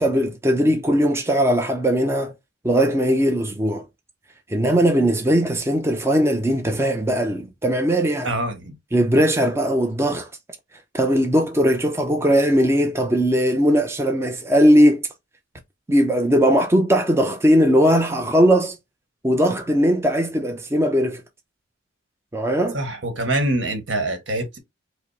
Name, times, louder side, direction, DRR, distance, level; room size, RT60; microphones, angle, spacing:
voice 1, 0.0-2.3 2.6-3.9 4.5-8.3 8.9-10.3 10.9-15.0 15.9-18.8 19.2-21.2 22.3-22.8, equal, 15° right, 0.5 m, -19 dB
voice 2, 8.2-8.8 22.7-24.6, right 1 dB, 65° right, 1.3 m, -25 dB
5.0 x 2.0 x 3.1 m
head